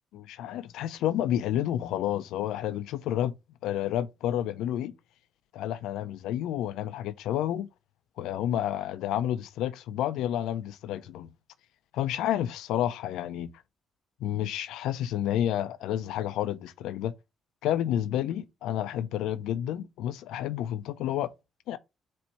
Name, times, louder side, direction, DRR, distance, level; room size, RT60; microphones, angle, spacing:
voice 1, 0.1-3.3 3.6-4.9 5.5-7.7 8.2-11.3 11.9-13.5 14.2-17.1 17.6-21.3 21.7-21.8, left 11 dB, 90° left, 0.4 m, -30 dB
4.2 x 2.6 x 4.4 m
cardioid pair, 90°, 0 cm